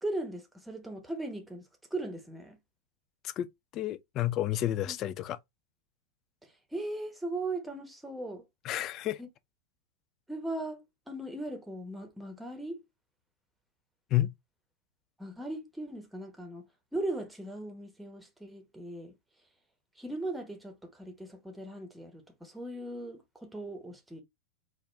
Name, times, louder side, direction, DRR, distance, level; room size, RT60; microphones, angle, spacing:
voice 1, 0.0-2.6 4.9-5.0 6.4-8.5 9.2-9.3 10.3-12.8 15.2-19.2 20.0-24.2, right 2 dB, 5° right, 1.0 m, -38 dB
voice 2, 3.7-5.4 8.6-9.2 14.1-14.3, left 13 dB, 35° left, 0.4 m, -30 dB
4.1 x 2.5 x 3.2 m
figure-of-eight pair, 90°, 0 cm